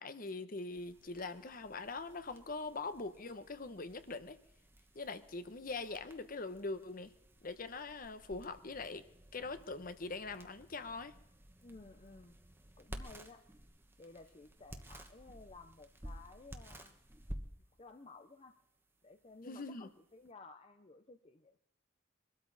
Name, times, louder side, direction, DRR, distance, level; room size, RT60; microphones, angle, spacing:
voice 1, 0.0-4.4 4.9-7.1 7.4-9.0 9.3-11.2 19.5-19.9, left 3 dB, 50° left, 11 dB, 1.0 m, -42 dB
sound 1, 0.7-20.3, right 1 dB, 10° right, 1.1 m, -54 dB
voice 2, 11.6-12.4 12.8-13.4 14.0-16.9 17.8-18.5 19.0-21.6, left 3 dB, 30° left, 7 dB, 0.6 m, -55 dB
22.5 x 13.0 x 4.0 m, 0.81 s
head